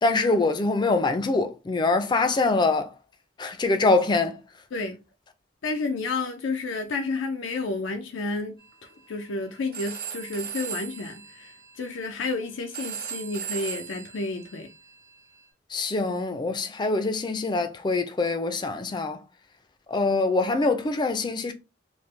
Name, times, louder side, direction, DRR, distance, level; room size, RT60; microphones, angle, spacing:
voice 1, 0.0-2.9 3.4-4.4 15.7-19.2 19.9-21.5, left 3 dB, 25° left, 0.4 m, -24 dB
voice 2, 5.6-8.5 9.1-14.7, left 3 dB, 90° left, 0.5 m, -31 dB
Telephone, 8.6-15.5, right 8 dB, 50° right, 1.0 m, -39 dB
3.2 x 2.1 x 3.1 m
head